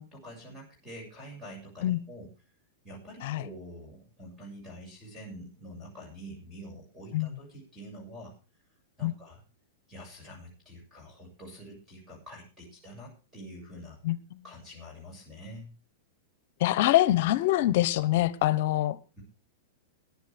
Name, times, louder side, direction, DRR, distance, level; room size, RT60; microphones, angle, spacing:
voice 1, 0.0-2.3 2.8-8.3 9.0-9.4 9.9-14.0 14.4-15.7 19.2-19.3, equal, 5° right, -1 dB, 6.8 m, -46 dB
voice 2, 14.0-14.4 16.6-19.0, left 14 dB, 55° left, 16 dB, 1.0 m, -25 dB
18.5 x 11.0 x 3.6 m, 0.32 s
supercardioid pair, 145°, 0 cm